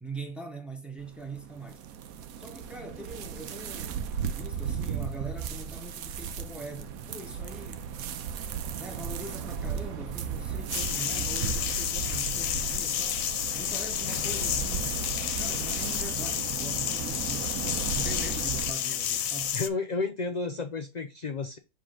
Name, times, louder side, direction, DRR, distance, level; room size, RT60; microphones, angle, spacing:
voice 1, 0.0-1.8 2.4-7.9 8.8-13.2 13.5-15.0 15.4-17.5 17.9-19.6, right 2 dB, ahead, 1.1 m, -42 dB
sound 1, 1.0-18.7, right 7 dB, 85° right, 1.2 m, -35 dB
sound 2, 10.7-19.7, left 10 dB, 75° left, 1.1 m, -31 dB
voice 2, 19.5-21.6, left 4 dB, 45° left, 0.5 m, -31 dB
7.4 x 3.5 x 3.8 m
omnidirectional pair, 1.4 m